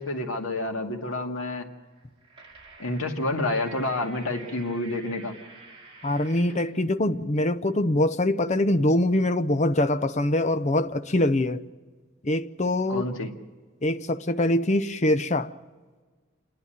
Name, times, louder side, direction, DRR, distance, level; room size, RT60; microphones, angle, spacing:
voice 1, 0.0-1.7 2.8-5.3 12.9-13.3, left 2 dB, 85° left, 2.1 m, -29 dB
sound 1, 2.0-6.8, right 3 dB, 30° right, 2.6 m, -48 dB
voice 2, 6.0-11.6 12.2-13.0 13.8-15.5, left 1 dB, 35° left, 0.7 m, -23 dB
28.5 x 11.0 x 9.0 m
head